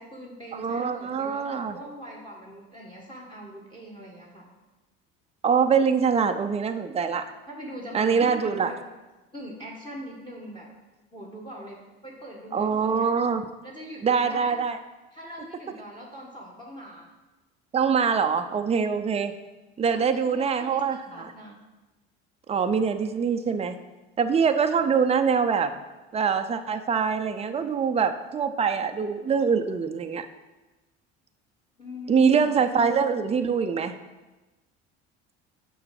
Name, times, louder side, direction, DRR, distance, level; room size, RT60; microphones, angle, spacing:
voice 1, 0.0-4.5 7.5-8.8 9.3-10.7 11.1-13.1 13.6-14.5 15.1-17.1 19.9-21.6 31.8-32.5, equal, 15° left, -1 dB, 1.7 m, -41 dB
voice 2, 0.5-1.8 5.4-7.3 7.9-8.7 12.5-13.5 14.0-14.8 17.7-19.3 19.8-21.3 22.5-23.8 24.2-25.8 26.1-30.3 32.1-33.9, right 6 dB, 20° right, 7 dB, 0.5 m, -24 dB
6.6 x 4.6 x 6.0 m, 1.1 s
hypercardioid pair, 75°, 32 cm